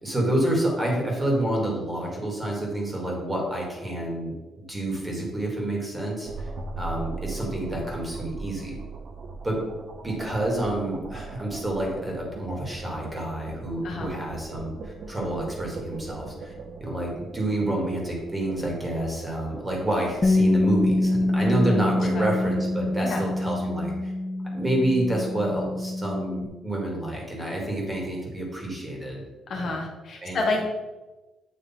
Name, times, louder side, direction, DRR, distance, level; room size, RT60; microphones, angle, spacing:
voice 1, 0.0-4.3 4.7-6.5 6.8-8.8 9.4-9.6 10.0-16.5 16.8-24.1 24.5-29.2 29.5-29.7 30.2-30.4, right 1 dB, 20° right, -1 dB, 2.0 m, -28 dB
sound 1, 6.3-23.5, right 4 dB, 55° right, 0.7 m, -40 dB
Bass guitar, 20.2-26.5, left 2 dB, 30° left, 0.5 m, -25 dB
voice 2, 29.5-30.7, left 2 dB, 55° left, 1 dB, 1.1 m, -29 dB
7.8 x 3.0 x 4.3 m, 1.1 s
cardioid pair, 90°, 0 cm